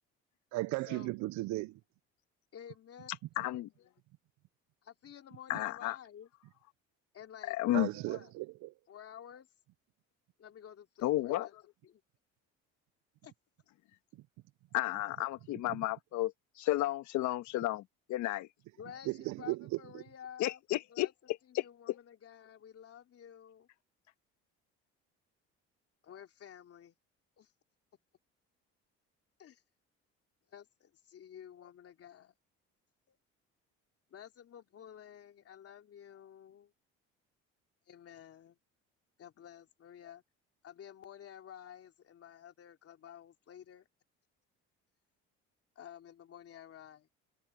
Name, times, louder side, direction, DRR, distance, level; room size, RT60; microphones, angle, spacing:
voice 1, 0.5-1.8 7.7-8.7 14.1-14.3 19.1-20.0, right 20 dB, 75° right, 0.6 m, -36 dB
voice 2, 2.5-3.1 4.8-6.3 7.1-7.5 8.1-8.2 8.9-9.5 10.4-11.3 11.9-12.0 13.2-13.3 18.8-20.6 20.9-21.1 21.6-23.7 26.0-26.9 27.4-27.5 29.4-29.6 30.5-32.3 33.1-33.2 34.1-36.7 37.9-38.6 39.2-40.2 40.6-43.9 45.7-47.1, left 9 dB, 50° left, 3.0 m, -52 dB
voice 3, 3.1-3.9 5.5-6.0 7.4-7.9 11.0-11.6 14.7-18.5 20.4-22.0, left 16 dB, 75° left, 1.5 m, -33 dB
supercardioid pair, 85°, 29 cm